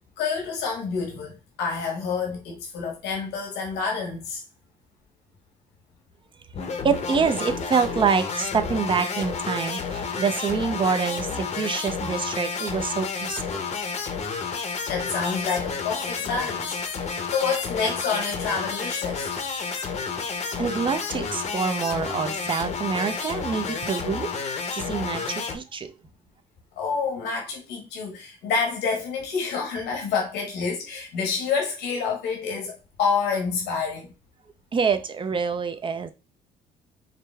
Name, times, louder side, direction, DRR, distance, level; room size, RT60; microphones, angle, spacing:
voice 1, 0.2-4.4 14.9-16.8 17.1-19.4 26.8-34.1, left 5 dB, 80° left, 1.4 m, -28 dB
sound 1, 6.5-25.6, left 5 dB, 40° left, 0.8 m, -31 dB
voice 2, 6.8-13.6 20.6-25.9 34.7-36.1, right 6 dB, 30° right, 0.6 m, -26 dB
5.0 x 2.2 x 3.3 m
cardioid pair, 110°, 17 cm